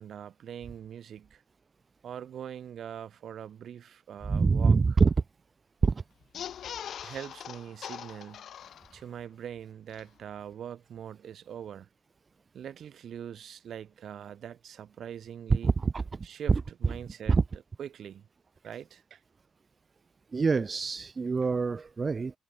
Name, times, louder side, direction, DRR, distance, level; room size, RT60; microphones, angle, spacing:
voice 1, 0.0-1.4 2.0-4.8 7.0-8.4 8.9-11.9 12.5-15.7 16.2-16.5 16.8-17.4 17.8-18.2 18.6-19.2, right 9 dB, 60° right, 2.8 m, -42 dB
voice 2, 4.3-5.1 5.8-6.0 15.5-16.9 17.3-17.4 20.3-22.3, right 4 dB, 35° right, 1.0 m, -25 dB
sound 1, 6.2-9.2 9.6-9.7 9.9-10.0, left 9 dB, 65° left, 1.2 m, -42 dB
cardioid pair, 90°, 0 cm